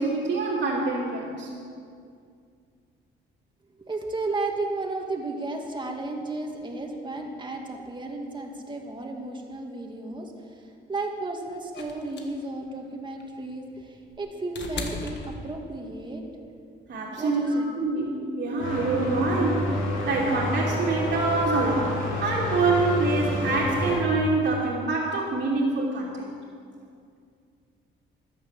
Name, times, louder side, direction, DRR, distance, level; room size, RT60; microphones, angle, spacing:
voice 1, 0.0-1.5 16.9-17.4 17.8-26.3, right 3 dB, 65° right, -6 dB, 2.7 m, -26 dB
voice 2, 3.8-16.2 17.2-17.7 18.6-18.7, right 2 dB, 25° right, 1 dB, 2.1 m, -33 dB
sound 1, 11.7-16.0 17.3-17.4, left 4 dB, 60° left, 1.6 m, -38 dB
sound 2, 18.6-24.0, left 2 dB, 90° left, 3.3 m, -29 dB
13.0 x 9.5 x 7.4 m, 2.3 s
cardioid pair, 90°, 20 cm